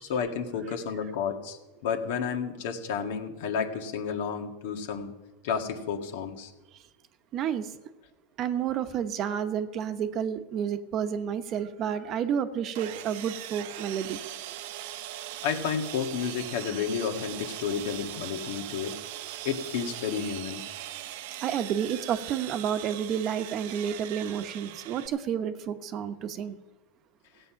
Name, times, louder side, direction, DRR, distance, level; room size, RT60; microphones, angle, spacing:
voice 1, 0.0-5.1 5.4-6.5 15.4-19.0 19.4-20.6, left 6 dB, 70° left, 5 dB, 1.9 m, -31 dB
voice 2, 7.3-7.7 8.4-14.2 21.4-26.6, right 8 dB, 40° right, 10 dB, 1.0 m, -30 dB
Sawing, 12.7-25.1, right 13 dB, 70° right, 0.8 m, -40 dB
16.5 x 8.1 x 5.8 m, 1.1 s
supercardioid pair, 115°, 0 cm